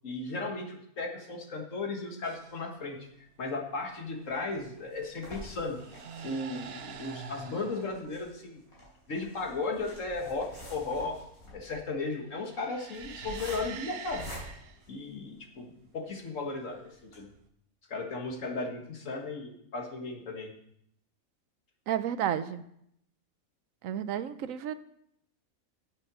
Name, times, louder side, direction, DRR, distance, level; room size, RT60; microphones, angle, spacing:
voice 1, 0.0-5.8 6.2-8.6 9.1-11.2 11.5-14.3 14.9-17.3 17.9-20.5, left 3 dB, 60° left, 2 dB, 2.0 m, -35 dB
sound 1, 2.2-2.7 4.2-4.6 5.6-8.1 12.2-14.8 16.7-17.5, right 7 dB, 55° right, 0.8 m, -45 dB
sound 2, 4.2-15.6 16.1-16.2 16.5-16.6 17.0-17.2, equal, 80° left, 4.4 m, -48 dB
voice 2, 21.9-22.6 23.8-24.7, right 10 dB, 75° right, 13 dB, 1.0 m, -31 dB
8.7 x 7.6 x 6.1 m, 0.73 s
omnidirectional pair, 1.5 m